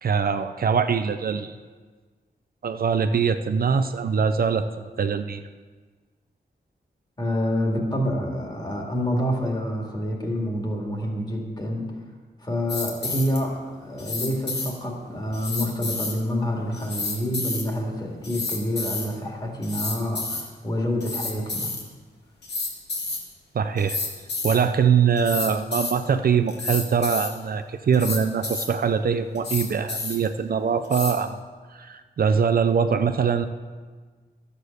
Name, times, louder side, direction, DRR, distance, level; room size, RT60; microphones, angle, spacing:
voice 1, 0.0-1.6 2.6-5.4 23.5-24.0 24.4-31.4 31.7-33.5, right 6 dB, 60° right, 9 dB, 0.5 m, -23 dB
voice 2, 7.2-11.9 12.4-21.7, equal, 25° left, 0 dB, 2.1 m, -27 dB
sound 1, 12.7-13.4 14.0-14.7 15.3-16.2 16.7-17.6 18.2-19.0 19.6-20.4 21.0-21.8 22.4-23.2 23.8-24.6 25.2-25.9 26.5-27.3 27.9-28.7 29.3-30.3 30.8-31.1, left 3 dB, 75° left, 2.1 m, -30 dB
13.0 x 8.2 x 6.5 m, 1.5 s
wide cardioid pair, 170°, 18 cm